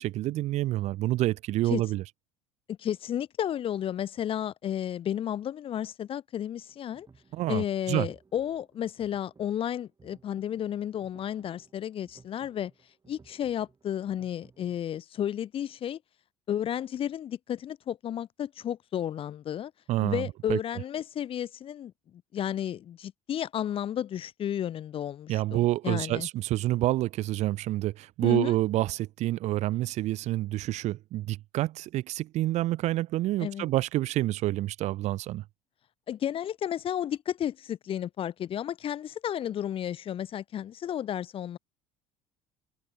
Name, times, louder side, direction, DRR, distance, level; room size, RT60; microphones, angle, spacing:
voice 1, 0.0-2.0 7.3-8.1 19.9-20.6 25.3-35.4, right 16 dB, 45° right, 0.6 m, -28 dB
voice 2, 2.7-7.1 7.5-12.7 13.1-16.0 16.5-19.7 20.0-21.9 22.3-26.3 28.2-28.6 33.4-33.7 36.1-41.6, left 10 dB, 35° left, 0.6 m, -32 dB
sound 1, 6.7-14.8, right 4 dB, 25° right, 3.8 m, -60 dB
figure-of-eight pair, 60°, 16 cm